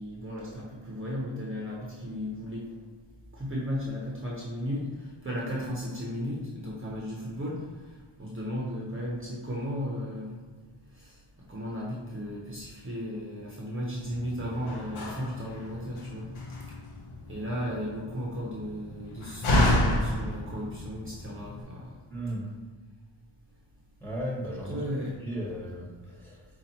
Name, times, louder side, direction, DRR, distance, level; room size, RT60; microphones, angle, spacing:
voice 1, 0.0-2.7 3.3-10.4 10.9-11.2 11.5-16.3 17.3-21.9 24.7-25.1, equal, 25° right, -5 dB, 0.8 m, -35 dB
Slam, 14.0-21.6, left 1 dB, 80° left, 0.8 m, -31 dB
voice 2, 22.1-22.5 24.0-26.4, right 1 dB, 5° left, -4 dB, 1.2 m, -36 dB
5.3 x 2.4 x 2.9 m, 1.5 s
cardioid pair, 65°, 48 cm